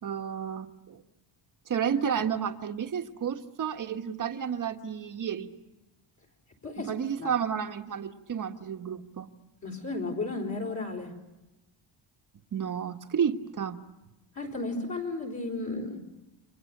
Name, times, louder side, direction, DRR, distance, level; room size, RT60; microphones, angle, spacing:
voice 1, 0.0-1.0 1.7-5.5 6.8-9.3 12.5-13.8, right 8 dB, 45° right, 6 dB, 1.5 m, -31 dB
voice 2, 6.6-6.9 7.2-7.3 9.6-11.1 14.3-16.0, left 2 dB, 40° left, 1 dB, 4.4 m, -33 dB
29.5 x 25.0 x 6.7 m, 1.0 s
cardioid pair, 150°, 45 cm